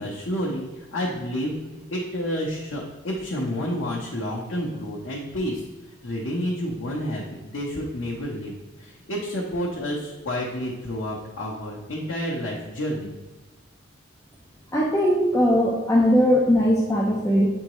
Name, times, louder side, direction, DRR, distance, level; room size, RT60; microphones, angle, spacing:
voice 1, 0.0-5.6 6.0-7.3 7.5-13.1, equal, 70° left, -4 dB, 0.9 m, -30 dB
voice 2, 14.7-17.5, equal, 15° left, -3 dB, 0.6 m, -19 dB
8.7 x 3.6 x 3.0 m, 1.3 s
head